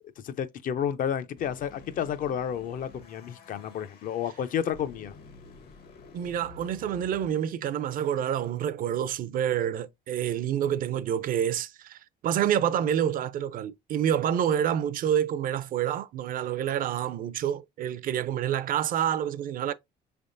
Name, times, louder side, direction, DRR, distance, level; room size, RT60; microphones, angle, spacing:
voice 1, 0.2-5.1, left 9 dB, 55° left, 0.5 m, -31 dB
sound 1, 1.4-7.3, left 3 dB, 70° left, 1.3 m, -50 dB
voice 2, 6.1-19.7, right 10 dB, 55° right, 0.4 m, -28 dB
4.9 x 3.4 x 2.5 m
cardioid pair, 110°, 17 cm